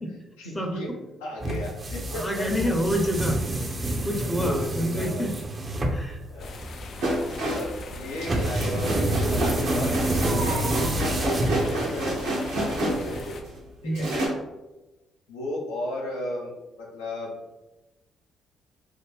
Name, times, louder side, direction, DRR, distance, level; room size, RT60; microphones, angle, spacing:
voice 1, 0.1-2.5 4.0-4.1 4.4-5.3 6.3-6.6 7.5-12.3 12.8-13.2 13.8-14.1 15.3-16.5 16.8-17.4, left 1 dB, 80° left, -3 dB, 0.7 m, -35 dB
sound 1, 1.4-12.0, right 1 dB, 35° right, 0.6 m, -28 dB
voice 2, 2.1-3.4 4.0-5.3 5.9-6.2 13.8-14.1, equal, 20° left, 1 dB, 0.7 m, -27 dB
sound 2, 6.4-13.4, left 3 dB, 55° left, 0.4 m, -40 dB
sound 3, 7.0-13.6 13.9-14.3, right 1 dB, 75° right, 1.1 m, -28 dB
3.5 x 2.1 x 3.4 m, 1.1 s
hypercardioid pair, 45°, 0 cm